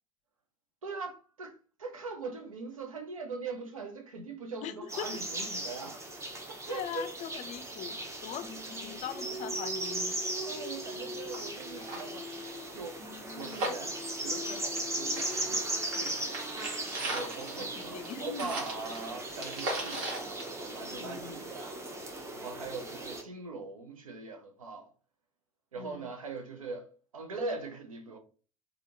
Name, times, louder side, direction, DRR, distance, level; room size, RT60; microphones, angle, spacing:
voice 1, 0.8-6.0 6.5-7.2 8.2-8.3 10.3-12.2 12.7-13.0 13.3-16.4 17.0-21.8 22.3-24.9 25.7-28.2, right 3 dB, 85° right, 0.6 m, -41 dB
voice 2, 4.6-5.1 6.7-8.5 8.8-10.2 17.8-18.5 21.0-21.4 25.8-26.1, left 9 dB, 45° left, 0.4 m, -41 dB
sound 1, 4.9-23.2, right 1 dB, 15° right, 0.8 m, -38 dB
Singing, 8.4-12.7 13.0-19.0, equal, 10° left, 0.8 m, -45 dB
sound 2, 11.0-11.1 11.3-11.4 11.7-14.9 15.2-21.3 21.6-21.7, right 2 dB, 65° right, 1.3 m, -38 dB
3.4 x 2.4 x 2.7 m
figure-of-eight pair, 60°, 17 cm